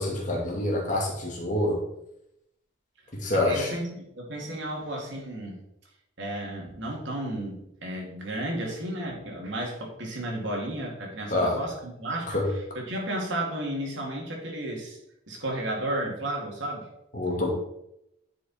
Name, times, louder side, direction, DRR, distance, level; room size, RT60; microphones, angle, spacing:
voice 1, 0.0-1.8 3.1-3.7 11.3-11.6 12.3-12.5 17.1-17.5, left 1 dB, 40° left, -1 dB, 2.1 m, -26 dB
voice 2, 3.3-5.6 6.2-15.0 15.3-16.9, right 1 dB, 65° right, -1 dB, 2.5 m, -33 dB
10.0 x 5.4 x 4.3 m, 0.80 s
head